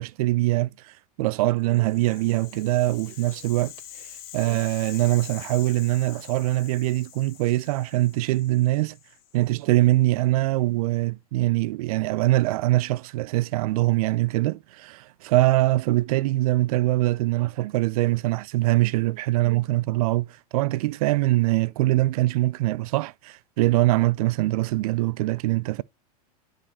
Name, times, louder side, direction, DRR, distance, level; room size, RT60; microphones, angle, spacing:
voice 1, 0.0-3.7 4.3-9.0 9.3-20.3 20.5-25.8, right 18 dB, 70° right, 0.4 m, -23 dB
Rattle (instrument), 1.6-9.8, left 11 dB, 50° left, 2.0 m, -45 dB
9.8 x 5.0 x 2.9 m
hypercardioid pair, 110°, 20 cm